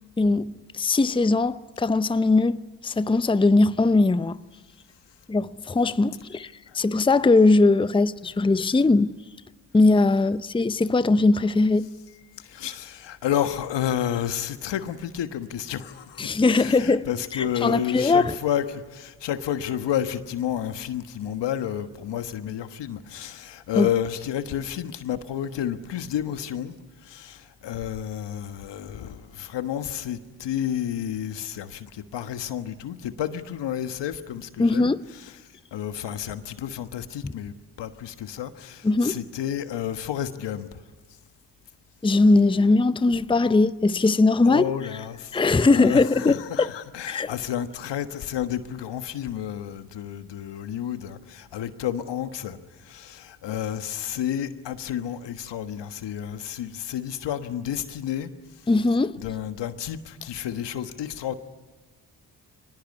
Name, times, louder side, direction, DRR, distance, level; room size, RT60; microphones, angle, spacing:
voice 1, 0.2-4.4 5.3-9.1 9.7-11.9 16.2-18.3 23.8-23.9 34.6-35.1 37.2-37.3 38.8-39.2 42.0-44.7 45.3-46.3 47.1-47.3 58.7-59.2, left 3 dB, 10° left, 0.7 m, -20 dB
voice 2, 12.4-26.7 27.0-40.8 44.4-58.3 59.2-61.4, left 10 dB, 75° left, 1.4 m, -31 dB
23.0 x 20.0 x 9.9 m
supercardioid pair, 45°, 43 cm